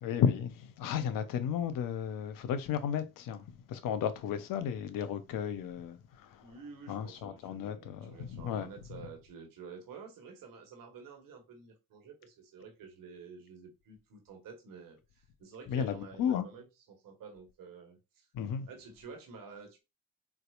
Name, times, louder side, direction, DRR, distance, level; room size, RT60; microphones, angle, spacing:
voice 1, 0.0-6.0 6.3-6.4 6.9-8.7 15.7-16.5 18.3-18.7, left 8 dB, 70° left, 0.6 m, -33 dB
voice 2, 6.4-18.3 18.7-19.8, right 5 dB, 70° right, 1.2 m, -50 dB
4.1 x 2.3 x 2.3 m
hypercardioid pair, 40°, 35 cm